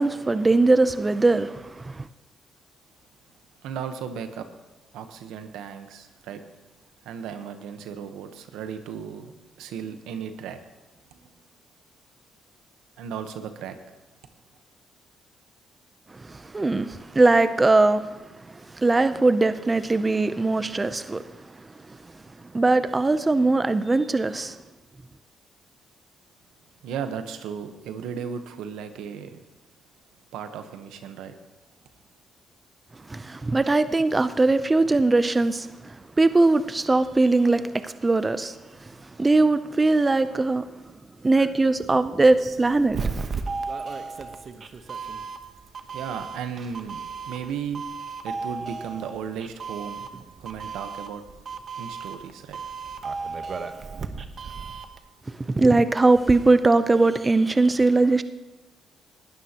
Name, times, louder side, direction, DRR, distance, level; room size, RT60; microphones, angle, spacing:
voice 1, 0.0-2.0 16.3-18.1 18.7-21.2 22.5-24.6 33.1-38.6 39.2-40.7 41.2-43.0 55.5-58.2, right 3 dB, 20° right, 0.6 m, -20 dB
voice 2, 3.6-4.5 4.9-6.4 7.0-9.3 9.6-10.6 11.1-11.3 13.0-13.8 26.8-29.4 30.3-31.3 45.9-47.0 47.3-47.8 48.2-50.1 50.4-51.2 51.8-52.6, right 7 dB, 90° right, 1.1 m, -35 dB
Doorbell, 42.2-55.0, right 4 dB, 45° right, 1.0 m, -35 dB
19.0 x 12.5 x 3.0 m
cardioid pair, 90°, 0 cm